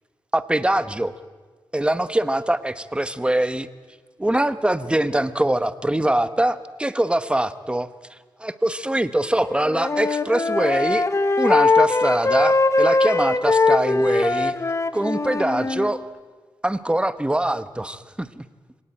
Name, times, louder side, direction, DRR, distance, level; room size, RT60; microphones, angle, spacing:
voice 1, 0.3-1.1 1.7-3.7 4.2-11.1 11.4-14.6 14.9-16.1 16.6-18.5, right 1 dB, 15° right, 13 dB, 1.0 m, -23 dB
Wind instrument woodwind instrument, 9.5-15.9, left 3 dB, 35° left, 1.4 m, -21 dB
25.0 x 18.0 x 8.9 m, 1.4 s
cardioid pair, 75°, 8 cm